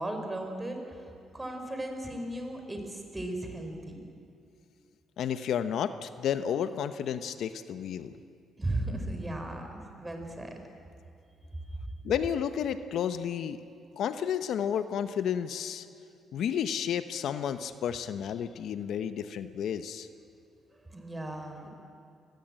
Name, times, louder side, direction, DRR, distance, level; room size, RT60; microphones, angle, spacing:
voice 1, 0.0-4.1 8.6-10.5 20.9-21.7, right 1 dB, 15° right, 4 dB, 4.9 m, -36 dB
voice 2, 5.2-8.1 12.0-13.6 14.0-15.9 16.3-20.1, left 8 dB, 70° left, 10 dB, 1.0 m, -31 dB
24.5 x 20.0 x 9.0 m, 2.5 s
cardioid pair, 90°, 0 cm